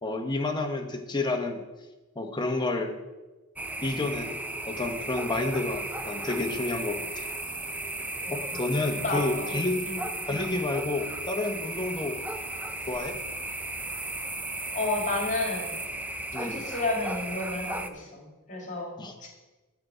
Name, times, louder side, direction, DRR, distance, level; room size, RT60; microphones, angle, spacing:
voice 1, 0.0-1.6 2.2-2.9 3.8-4.4 4.7-7.3 8.3-9.8 10.3-12.2 12.9-13.2 16.3-16.6 19.0-19.1, left 2 dB, 20° left, 4 dB, 0.9 m, -30 dB
sound 1, 3.6-17.9, right 2 dB, 5° right, 0.4 m, -35 dB
voice 2, 8.2-8.6 9.0-9.5 9.8-10.0 14.7-15.7 16.4-18.9 19.2-19.3, left 2 dB, 35° left, -1 dB, 2.2 m, -31 dB
8.6 x 7.8 x 4.9 m, 1.2 s
head